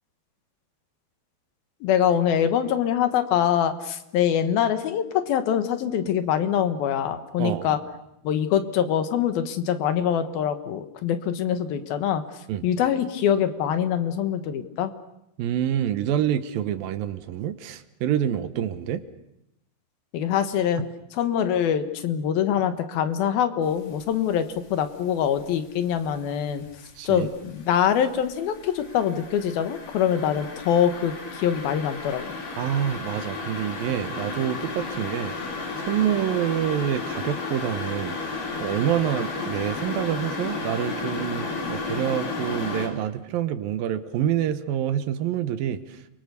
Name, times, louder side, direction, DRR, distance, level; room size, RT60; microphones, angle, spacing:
voice 1, 1.8-7.8 8.2-12.2 12.6-14.9 20.1-26.6 27.0-32.4, left 9 dB, 75° left, 9 dB, 3.2 m, -24 dB
voice 2, 7.4-7.8 12.5-12.6 15.4-19.0 27.0-27.3 32.6-35.3 35.8-38.1 38.6-46.1, right 10 dB, 75° right, 11 dB, 2.8 m, -27 dB
sound 1, 23.8-24.2 24.6-26.2 26.5-42.9, left 3 dB, 60° left, 5.0 m, -33 dB
30.0 x 23.5 x 6.9 m, 0.82 s
omnidirectional pair, 4.3 m